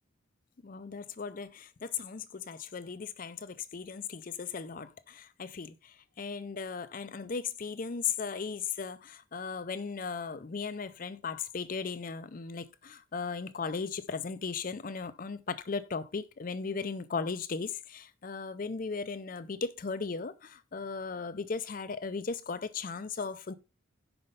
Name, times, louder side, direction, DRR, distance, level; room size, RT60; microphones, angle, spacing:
voice 1, 0.6-23.5, left 5 dB, 40° left, 0.5 m, -37 dB
5.7 x 5.2 x 5.3 m
head